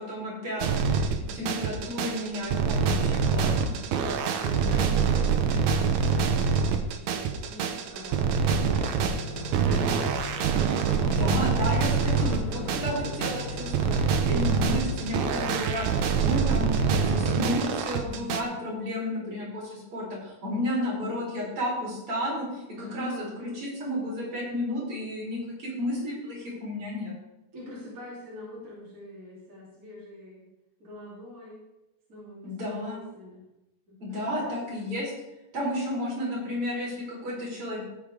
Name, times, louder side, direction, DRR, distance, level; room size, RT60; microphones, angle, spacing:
voice 1, 0.0-3.7 11.0-14.0 14.3-23.1 23.4-27.1 32.4-33.0 34.0-35.1 35.5-37.8, left 1 dB, 45° right, -5 dB, 4.9 m, -32 dB
sound 1, 0.6-18.4, right 6 dB, 70° right, 2.0 m, -25 dB
voice 2, 1.2-1.8 4.4-6.4 6.9-10.5 18.4-18.7 22.8-23.3 27.5-30.5 30.8-31.6 32.1-33.4 33.9-34.8, left 1 dB, 25° right, -7 dB, 3.3 m, -44 dB
sound 2, 8.5-15.6, equal, 80° left, 3.0 m, -37 dB
15.5 x 8.4 x 3.6 m, 0.96 s
omnidirectional pair, 3.7 m